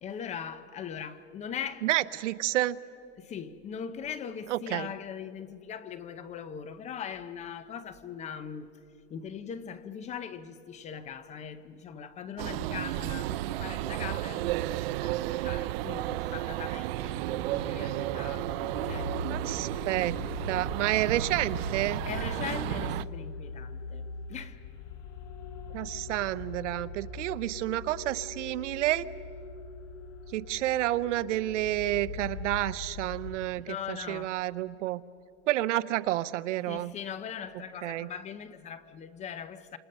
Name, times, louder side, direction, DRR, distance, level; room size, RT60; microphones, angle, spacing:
voice 1, 0.0-1.9 3.2-8.7 9.1-20.0 22.1-24.0 24.3-24.6 33.7-34.3 36.7-39.8, left 7 dB, 20° left, 0.7 m, -40 dB
voice 2, 1.8-2.8 4.5-4.9 19.3-20.2 20.5-22.0 25.7-29.1 30.3-35.0 35.5-36.9 37.8-38.1, right 15 dB, 85° right, 0.8 m, -30 dB
sound 1, 12.4-23.0, right 16 dB, 55° right, 0.5 m, -33 dB
sound 2, 16.9-33.4, left 3 dB, 80° left, 2.2 m, -41 dB
27.5 x 27.0 x 5.4 m
supercardioid pair, 155°, 36 cm